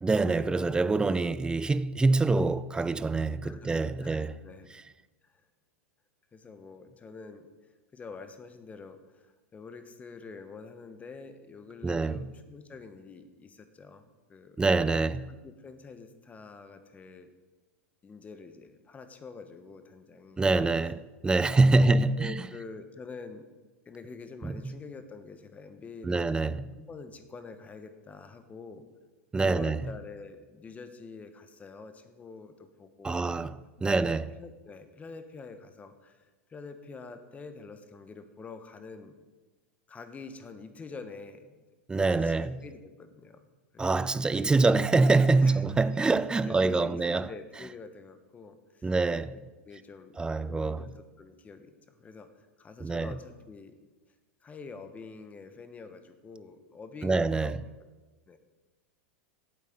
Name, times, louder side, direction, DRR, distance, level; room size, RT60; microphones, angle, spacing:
voice 1, 0.0-4.3 11.8-12.2 14.6-15.3 20.4-22.4 24.4-24.7 26.0-26.7 29.3-29.8 33.0-34.3 41.9-42.6 43.8-47.3 48.8-49.4 50.2-50.8 52.8-53.1 57.0-57.6, right 3 dB, 10° right, 0.4 m, -25 dB
voice 2, 3.4-4.7 5.3-5.4 6.3-7.5 7.9-14.6 15.3-17.3 18.0-20.4 21.8-23.4 23.8-26.3 26.8-28.8 29.4-33.2 33.8-39.1 39.9-41.6 42.0-43.4 43.7-44.0 45.4-45.6 46.4-48.9 49.3-49.4 49.7-50.2 50.5-50.9 51.2-53.8 54.4-57.5 58.3-58.4, left 4 dB, 20° left, 1.3 m, -46 dB
8.5 x 8.3 x 8.7 m
hypercardioid pair, 115°, 7 cm